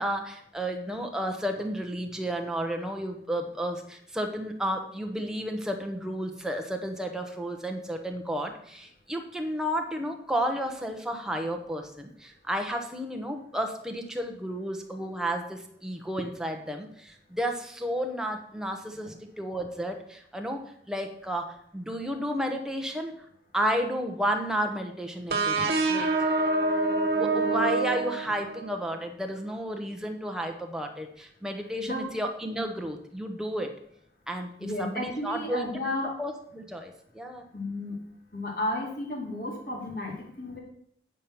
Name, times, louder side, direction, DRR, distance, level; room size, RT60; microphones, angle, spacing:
voice 1, 0.0-23.1 23.5-26.1 26.9-33.7 34.3-35.7 36.2-37.4, equal, 5° right, 3 dB, 0.9 m, -32 dB
sound 1, 25.3-28.8, right 3 dB, 60° right, 1.4 m, -26 dB
voice 2, 31.8-32.1 34.6-36.2 37.5-38.0 38.3-40.6, left 1 dB, 50° left, -1 dB, 2.4 m, -33 dB
9.2 x 5.3 x 5.9 m, 0.67 s
head